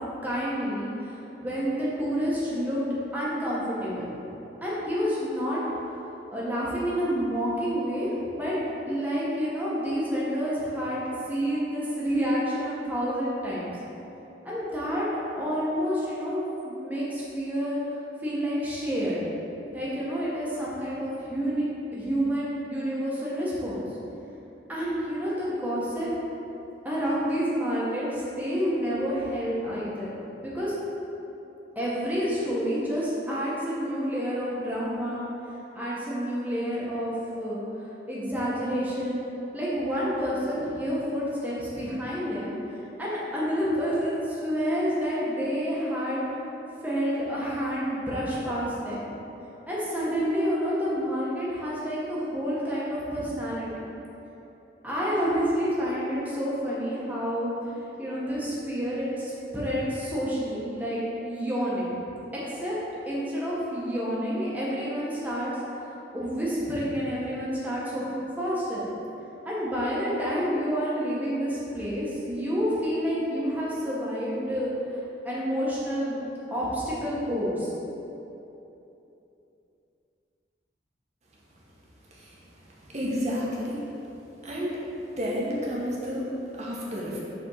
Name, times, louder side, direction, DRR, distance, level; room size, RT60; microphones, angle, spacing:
voice 1, 0.2-2.8 3.1-4.1 4.6-5.6 6.3-8.5 8.8-13.7 14.4-15.1 15.4-17.8 18.2-19.2 19.7-23.9 24.7-26.1 26.8-30.1 30.4-30.7 31.7-35.3 35.7-39.3 39.5-42.6 43.0-46.5 46.8-49.1 49.7-53.7 54.8-57.6 58.0-62.0 62.4-62.8 63.0-65.5 66.1-68.8 69.4-76.2 76.5-77.7, equal, 10° right, -8 dB, 1.6 m, -29 dB
voice 2, 82.1-82.4 82.8-83.8 84.4-84.8 85.1-87.2, equal, 40° right, -5 dB, 1.5 m, -31 dB
7.1 x 4.2 x 5.7 m, 3.0 s
head